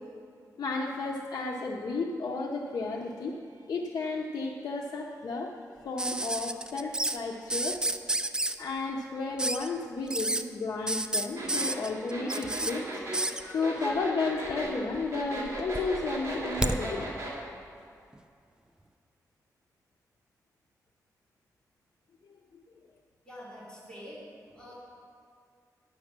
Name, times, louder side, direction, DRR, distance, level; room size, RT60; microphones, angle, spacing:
voice 1, 0.6-5.5 5.8-7.8 8.6-12.9 13.4-17.1, left 3 dB, 70° left, -3 dB, 0.8 m, -33 dB
sound 1, 6.0-7.2 7.5-8.6 9.4-9.7 10.1-10.4 10.9-12.7 13.1-13.4 14.5-15.0 15.4-16.8 18.1-18.2, right 1 dB, 10° right, 0.4 m, -30 dB
sound 2, 11.4-17.4, right 1 dB, 45° right, 2.7 m, -37 dB
voice 2, 23.2-24.2 24.5-24.7, equal, 15° left, -8 dB, 2.7 m, -46 dB
10.5 x 6.4 x 6.0 m, 2.4 s
wide cardioid pair, 110°, 7 cm